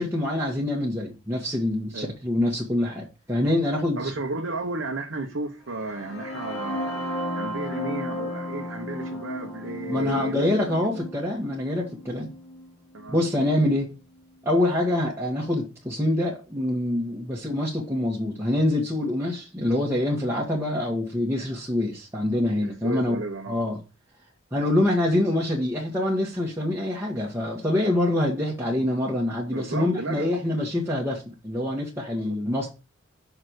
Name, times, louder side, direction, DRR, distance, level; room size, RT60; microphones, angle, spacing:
voice 1, 0.0-4.1 9.9-12.3 13.1-13.9 14.4-23.1 23.5-23.8 24.5-32.7, left 1 dB, 10° right, 1.5 m, -25 dB
voice 2, 4.0-6.9 7.4-10.9 12.9-13.2 22.6-23.6 29.5-30.3, right 2 dB, 65° right, 1.0 m, -33 dB
sound 1, 5.7-13.6, equal, 75° left, 2.4 m, -34 dB
5.9 x 4.3 x 6.3 m
head